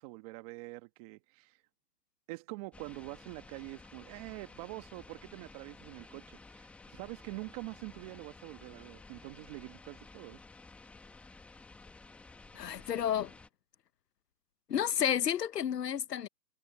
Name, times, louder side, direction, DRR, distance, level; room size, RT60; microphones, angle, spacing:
voice 1, 0.0-1.6 2.3-10.4, right 23 dB, 25° right, 1.7 m, -45 dB
sound 1, 2.7-13.5, left 3 dB, 5° left, 1.1 m, -54 dB
voice 2, 12.5-13.3 14.7-16.3, left 9 dB, 85° left, 0.9 m, -31 dB
hypercardioid pair, 150°, 47 cm